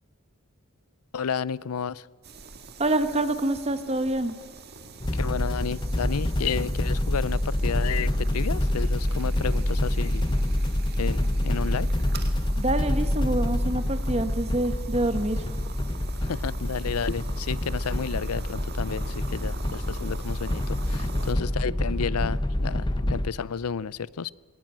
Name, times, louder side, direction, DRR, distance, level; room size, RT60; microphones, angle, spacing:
voice 1, 1.1-2.1 5.1-10.4 11.0-11.9 16.2-24.3, left 6 dB, 85° left, 21 dB, 0.5 m, -32 dB
sound 1, 2.2-21.3, right 4 dB, 45° right, 2.0 m, -44 dB
voice 2, 2.8-4.4 12.6-15.5, right 1 dB, 30° right, 10 dB, 1.2 m, -26 dB
sound 2, 5.0-23.3, left 1 dB, 20° left, 0.8 m, -27 dB
21.0 x 18.0 x 8.9 m, 1.5 s
head